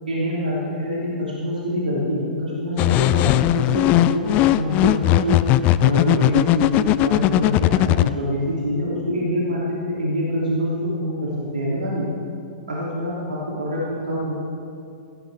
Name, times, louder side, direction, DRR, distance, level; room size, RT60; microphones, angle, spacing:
voice 1, 0.1-12.1 12.7-14.3, equal, 75° right, -6 dB, 2.9 m, -25 dB
sound 1, 2.8-8.1, left 15 dB, 30° left, 0.4 m, -18 dB
17.0 x 17.0 x 3.5 m, 2.5 s
figure-of-eight pair, 105°, 5 cm